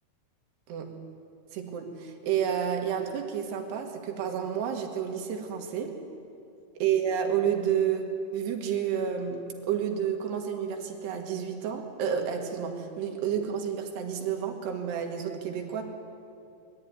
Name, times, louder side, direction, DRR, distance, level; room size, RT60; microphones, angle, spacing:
voice 1, 0.7-1.0 1.5-6.0 6.8-15.8, right 8 dB, 85° right, 3 dB, 3.8 m, -30 dB
21.5 x 12.5 x 9.6 m, 2.7 s
omnidirectional pair, 4.6 m